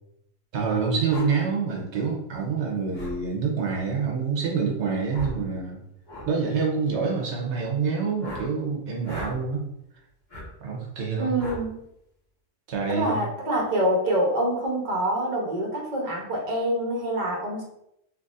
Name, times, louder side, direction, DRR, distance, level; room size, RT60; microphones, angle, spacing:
voice 1, 0.5-5.8 6.3-9.6 10.6-11.3 12.7-13.2, right 5 dB, 85° right, 0 dB, 1.1 m, -26 dB
sound 1, 1.1-1.3 2.9-3.2 5.1-5.4 6.1-6.3 8.2-8.5 9.0-9.3 10.3-10.5 11.4-11.6, left 1 dB, 45° left, 1.7 m, -37 dB
voice 2, 11.2-11.8 12.9-17.6, right 1 dB, 45° right, -1 dB, 0.9 m, -26 dB
4.0 x 2.9 x 2.4 m, 0.79 s
omnidirectional pair, 1.2 m